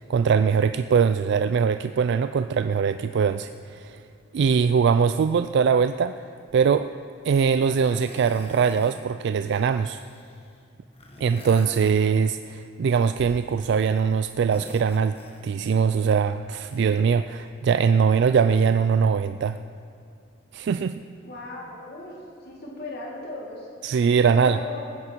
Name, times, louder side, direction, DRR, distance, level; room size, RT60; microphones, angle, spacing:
voice 1, 0.0-4.0 4.3-6.2 6.5-6.9 7.2-10.0 11.2-15.2 15.4-19.6 20.5-21.0 23.8-24.6, right 6 dB, 65° right, 11 dB, 0.3 m, -22 dB
sound 1, 7.5-9.0 9.3-10.5 10.9-12.5 12.9-14.0 14.3-15.7 16.5-17.6 18.5-18.6, left 1 dB, 30° left, 1.3 m, -46 dB
voice 2, 21.2-22.1 22.5-23.7 24.3-25.0, left 2 dB, 55° left, -3 dB, 2.1 m, -37 dB
20.5 x 9.7 x 4.5 m, 2.5 s
head